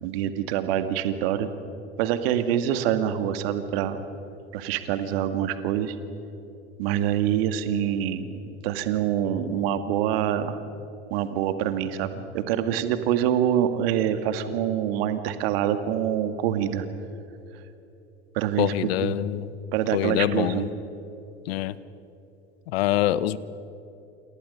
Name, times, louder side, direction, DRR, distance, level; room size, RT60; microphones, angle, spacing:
voice 1, 0.0-1.5 2.0-4.0 4.5-6.0 6.8-8.3 8.6-10.6 11.1-16.9 18.3-18.7 19.0-19.1 19.7-20.7, right 10 dB, 65° right, 9 dB, 2.0 m, -25 dB
voice 2, 18.6-19.5 19.9-20.6 21.5-21.8 22.7-23.4, left 14 dB, 65° left, 18 dB, 1.0 m, -25 dB
29.0 x 28.5 x 5.4 m, 2.9 s
hypercardioid pair, 75°, 32 cm